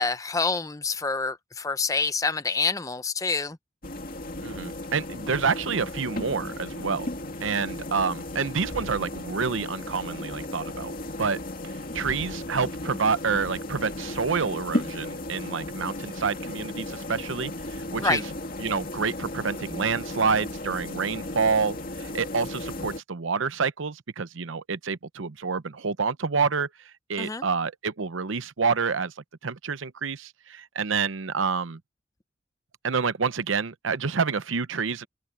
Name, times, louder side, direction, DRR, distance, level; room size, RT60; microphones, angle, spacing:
voice 1, 0.0-3.6 18.0-18.2 27.2-27.4, left 4 dB, 15° left, 0.6 m, -27 dB
sound 1, 3.8-23.0, left 1 dB, 45° left, 2.4 m, -35 dB
voice 2, 4.4-7.1 7.4-10.9 11.2-11.4 11.9-18.2 18.6-26.7 27.1-29.1 29.4-31.8 32.8-35.1, right 5 dB, 80° right, 0.8 m, -28 dB
open air
head